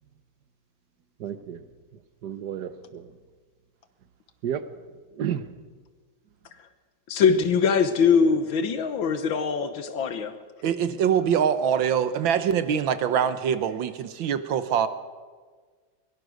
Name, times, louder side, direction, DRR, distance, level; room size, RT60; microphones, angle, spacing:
voice 1, 1.2-3.1 4.4-4.7 5.1-5.5, right 9 dB, 60° right, 1.5 m, -33 dB
voice 2, 7.1-10.4, left 6 dB, 75° left, 1.9 m, -22 dB
voice 3, 10.6-14.9, right 8 dB, 75° right, 1.7 m, -24 dB
22.5 x 18.5 x 6.4 m
omnidirectional pair, 2.2 m